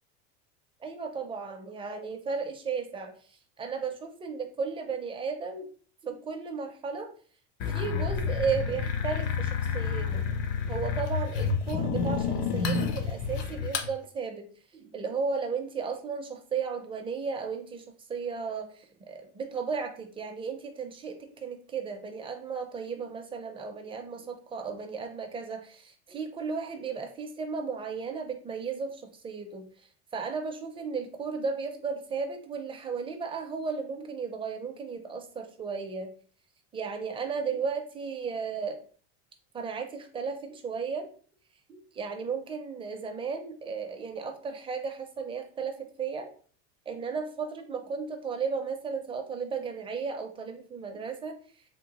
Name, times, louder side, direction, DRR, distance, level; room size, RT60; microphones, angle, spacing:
voice 1, 0.8-3.1 3.6-5.7 6.0-7.1 7.7-10.2 10.7-14.5 14.7-17.8 18.1-29.7 30.1-36.1 36.7-38.8 39.5-41.1 41.7-46.3 46.9-51.4, right 5 dB, 15° right, 4 dB, 0.4 m, -34 dB
sound 1, 7.6-13.9, left 5 dB, 60° left, 0.7 m, -29 dB
3.7 x 2.3 x 2.9 m, 0.43 s
supercardioid pair, 135°, 34 cm